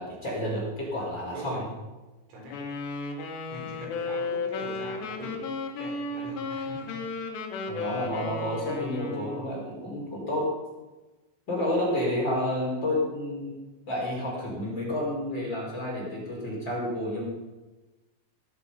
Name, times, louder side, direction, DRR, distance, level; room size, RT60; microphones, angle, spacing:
voice 1, 0.0-1.6 7.7-10.5 11.5-13.6 13.9-17.3, left 1 dB, 25° left, -5 dB, 5.3 m, -30 dB
voice 2, 1.3-1.6 2.3-2.6 3.0-3.2 3.5-5.4 5.8-7.0 12.1-12.2, right 1 dB, 65° right, -1 dB, 6.7 m, -42 dB
Wind instrument woodwind instrument, 2.5-9.5, left 3 dB, 65° left, 3.9 m, -34 dB
21.5 x 11.5 x 5.8 m, 1.2 s
omnidirectional pair, 5.6 m